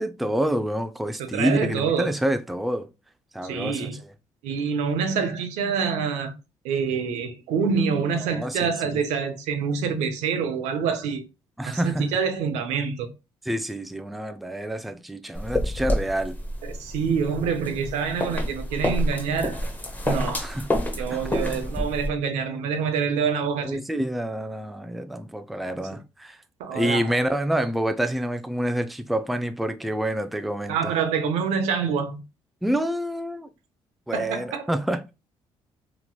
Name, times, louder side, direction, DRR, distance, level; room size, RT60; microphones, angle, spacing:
voice 1, 0.0-2.9 3.3-3.9 8.2-9.0 11.6-12.1 13.5-16.4 20.4-20.7 21.1-21.6 23.6-26.4 26.7-30.8 32.6-33.5 34.1-35.0, right 1 dB, ahead, 0.3 m, -27 dB
voice 2, 1.3-2.1 3.4-4.0 4.4-6.3 6.6-11.2 11.7-13.1 16.6-19.6 20.1-20.5 21.0-23.8 26.6-27.1 30.7-32.2 34.1-34.7, right 6 dB, 85° right, 0.6 m, -26 dB
sound 1, 15.4-22.1, left 1 dB, 15° left, 0.7 m, -28 dB
2.9 x 2.9 x 2.2 m
supercardioid pair, 75°, 11 cm